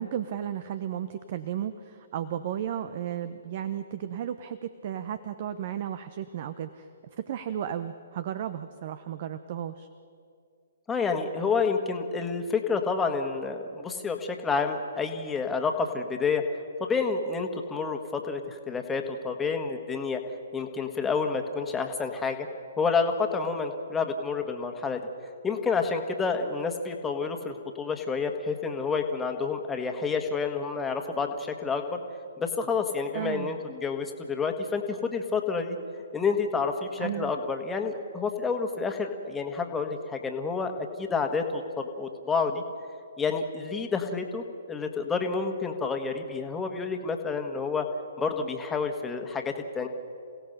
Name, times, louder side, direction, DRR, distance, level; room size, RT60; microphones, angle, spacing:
voice 1, 0.0-9.9 33.1-33.5 37.0-37.3, right 10 dB, 45° right, 12 dB, 0.8 m, -34 dB
voice 2, 10.9-16.4 16.8-20.2 20.5-22.5 22.8-25.0 25.4-32.0 32.4-35.8 36.1-40.7 41.0-42.6 43.2-47.9 48.2-49.9, left 5 dB, 10° left, 4 dB, 1.7 m, -29 dB
28.5 x 17.0 x 6.7 m, 2.4 s
figure-of-eight pair, 130°, 0 cm